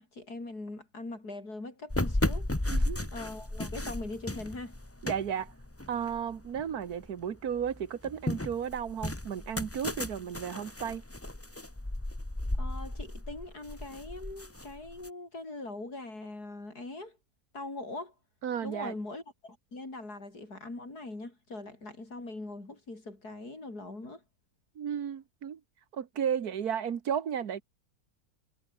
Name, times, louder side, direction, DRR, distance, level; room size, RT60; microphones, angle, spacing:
voice 1, 0.0-2.5 3.1-4.8 12.6-17.2 17.5-18.1 18.6-24.2, left 2 dB, 90° left, 6.5 m, -41 dB
sound 1, 1.9-7.1 7.5-15.1, left 1 dB, 10° left, 1.3 m, -34 dB
voice 2, 2.7-3.1 5.0-5.5 5.9-11.0 18.4-18.9 24.8-25.6 25.9-27.6, right 8 dB, 80° right, 1.8 m, -34 dB
omnidirectional pair, 1.6 m